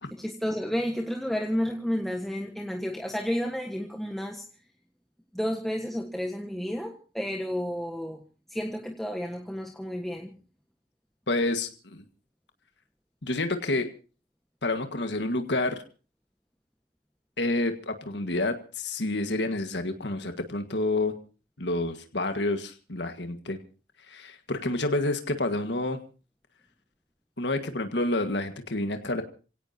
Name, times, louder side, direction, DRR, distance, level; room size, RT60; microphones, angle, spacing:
voice 1, 0.1-4.4 5.3-8.2 8.5-10.4, equal, ahead, 2 dB, 1.4 m, -31 dB
voice 2, 11.3-12.0 13.2-13.9 14.6-15.8 17.4-21.1 21.6-23.6 24.1-26.0 27.4-29.2, left 2 dB, 70° left, 7 dB, 1.7 m, -29 dB
28.0 x 17.0 x 2.8 m, 0.36 s
head